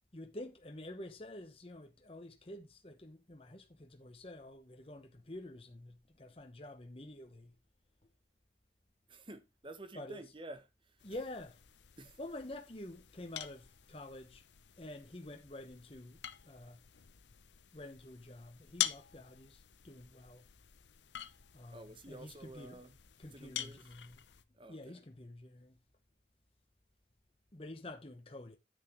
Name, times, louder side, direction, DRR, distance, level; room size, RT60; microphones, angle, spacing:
voice 1, 0.1-7.5 9.9-10.2 11.0-11.6 12.2-14.4 14.8-16.2 16.4-16.8 17.7-20.4 21.5-22.8 23.2-24.2 24.7-25.8 27.5-28.6, left 1 dB, 30° left, 1.0 m, -48 dB
voice 2, 9.1-11.0 12.0-12.2 21.7-22.9 23.2-23.8 24.6-25.0, right 1 dB, 30° right, 1.1 m, -51 dB
sound 1, 11.0-24.4, left 12 dB, 85° left, 0.7 m, -46 dB
9.6 x 8.2 x 3.0 m
head